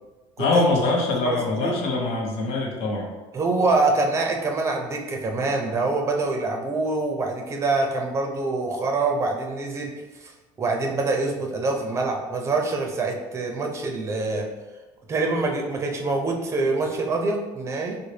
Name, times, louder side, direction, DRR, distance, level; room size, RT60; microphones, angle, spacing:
voice 1, 0.4-3.0, left 3 dB, 60° left, -1 dB, 0.8 m, -23 dB
voice 2, 1.2-1.8 3.3-9.9 10.2-10.3 10.6-14.5 15.1-18.0, right 3 dB, 25° right, 2 dB, 0.5 m, -25 dB
3.9 x 2.1 x 3.3 m, 1.1 s
cardioid pair, 125°, 12 cm